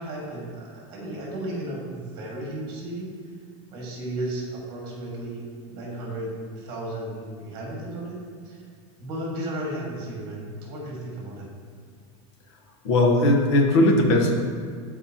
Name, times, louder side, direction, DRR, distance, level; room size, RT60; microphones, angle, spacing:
voice 1, 0.0-3.1 3.7-5.4 5.7-8.2 8.4-8.6 9.0-11.5, right 1 dB, 30° right, -3 dB, 2.0 m, -34 dB
voice 2, 12.8-14.3, left 1 dB, 80° left, 1 dB, 1.3 m, -18 dB
13.0 x 4.5 x 2.9 m, 2.1 s
supercardioid pair, 175°, 15 cm